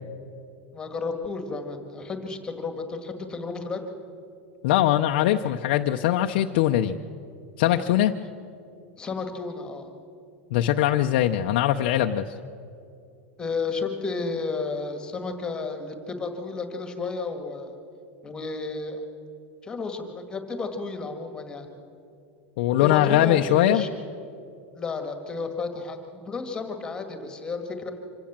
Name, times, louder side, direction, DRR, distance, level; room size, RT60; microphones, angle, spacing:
voice 1, 0.7-3.8 9.0-9.9 13.4-17.7 18.2-19.0 19.6-21.7 22.8-23.4 23.7-23.9 24.8-27.9, left 4 dB, 15° left, 6 dB, 1.8 m, -32 dB
voice 2, 4.6-7.0 7.6-8.1 10.5-12.2 22.6-23.8, left 12 dB, 60° left, 4 dB, 0.7 m, -21 dB
26.0 x 16.0 x 7.4 m, 2.6 s
supercardioid pair, 160°, 6 cm